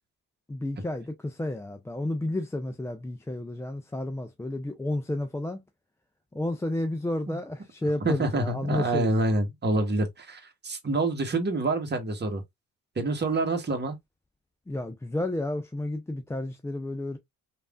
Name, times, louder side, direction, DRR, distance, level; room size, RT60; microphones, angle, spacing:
voice 1, 0.5-5.6 6.3-9.1 14.7-17.2, left 1 dB, 5° left, 0.3 m, -31 dB
voice 2, 8.0-12.4 13.0-14.0, right 2 dB, 25° right, 1.1 m, -27 dB
3.2 x 2.5 x 2.3 m
supercardioid pair, 60°, 40 cm